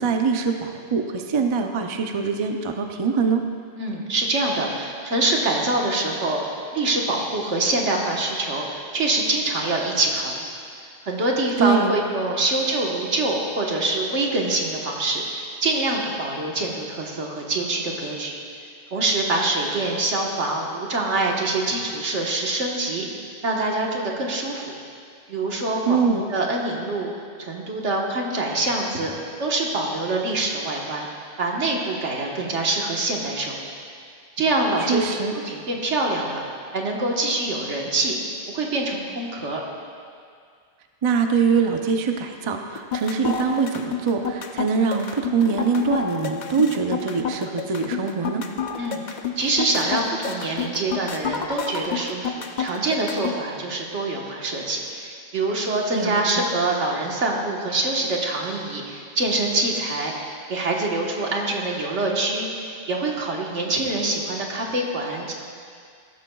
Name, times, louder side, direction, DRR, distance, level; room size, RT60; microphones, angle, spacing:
voice 1, 0.0-3.4 11.6-11.9 25.9-26.2 34.8-35.3 41.0-48.5 55.9-56.5, right 5 dB, 35° right, 4 dB, 0.5 m, -23 dB
voice 2, 3.8-6.4 6.7-10.5 11.0-18.4 18.9-23.0 23.4-24.7 25.3-26.0 26.3-27.1 27.4-29.1 29.4-31.1 31.4-33.6 34.4-35.0 35.4-36.4 36.7-38.1 38.5-39.6 48.7-49.0 49.4-65.3, right 2 dB, 80° right, -1 dB, 1.7 m, -25 dB
sound 1, 42.7-53.3, left 7 dB, 45° left, 0.7 m, -29 dB
15.5 x 13.5 x 2.3 m, 2.2 s
omnidirectional pair, 1.2 m